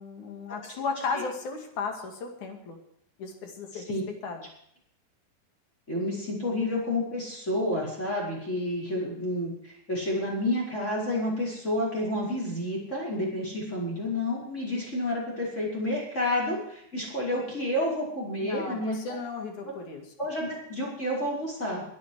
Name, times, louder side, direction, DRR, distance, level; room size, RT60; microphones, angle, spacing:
voice 1, 0.0-2.8 3.2-3.8 4.2-4.5 18.4-20.0, left 4 dB, 50° left, 3 dB, 3.0 m, -35 dB
voice 2, 5.9-19.0 20.2-21.8, left 1 dB, 15° left, -4 dB, 5.2 m, -30 dB
22.0 x 9.5 x 4.8 m, 0.71 s
omnidirectional pair, 5.4 m